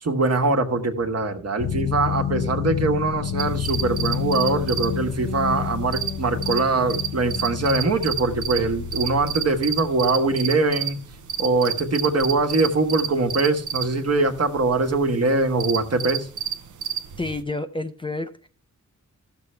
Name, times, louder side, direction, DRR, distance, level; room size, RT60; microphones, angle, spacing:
voice 1, 0.0-11.0 11.4-16.3, right 3 dB, 50° right, 1.4 m, -22 dB
sound 1, 1.6-11.2, left 9 dB, 85° left, 0.6 m, -30 dB
sound 2, 3.4-17.4, right 10 dB, 70° right, 0.8 m, -31 dB
voice 2, 17.2-18.5, left 2 dB, 15° left, 0.5 m, -29 dB
14.0 x 6.8 x 3.2 m
wide cardioid pair, 110°, 32 cm